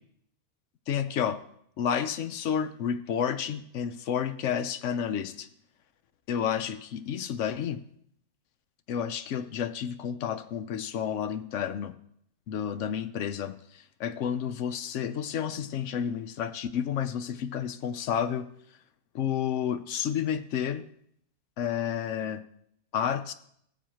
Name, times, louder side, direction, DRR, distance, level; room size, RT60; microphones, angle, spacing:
voice 1, 0.9-1.4 1.8-5.5 6.3-7.8 8.9-12.0 12.5-18.5 19.1-20.8 21.6-22.4 22.9-23.3, left 8 dB, 65° left, 12 dB, 0.8 m, -30 dB
19.0 x 7.1 x 2.9 m, 0.69 s
omnidirectional pair, 1.6 m